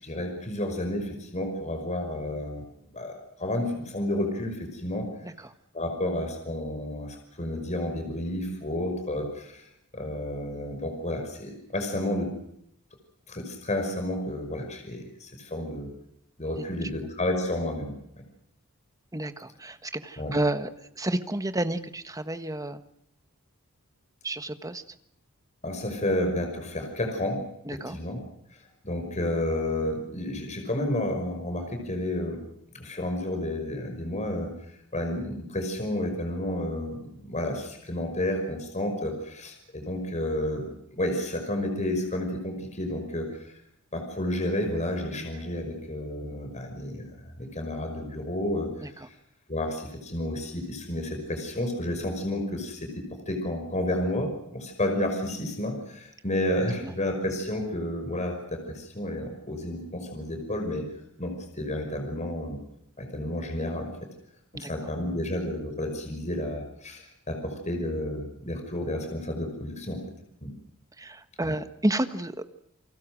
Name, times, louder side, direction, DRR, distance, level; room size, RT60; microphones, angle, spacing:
voice 1, 0.0-2.6 2.9-5.1 5.7-9.6 9.9-12.3 13.3-15.9 16.4-17.9 20.2-20.4 25.6-27.4 27.9-28.2 28.8-32.4 32.7-34.5 34.9-43.3 43.9-48.7 49.0-49.1 49.5-60.8 61.2-62.6 63.0-63.9 64.6-70.0 70.4-70.5 71.4-71.5, left 1 dB, 30° left, 4 dB, 5.6 m, -31 dB
voice 2, 5.2-5.5 19.1-20.7 21.0-22.8 24.2-24.8 27.6-28.0 45.2-45.3 48.8-49.1 56.8-56.9 64.5-64.7 71.0-72.4, right 1 dB, 15° right, 10 dB, 1.4 m, -30 dB
29.0 x 23.5 x 6.3 m, 0.75 s
head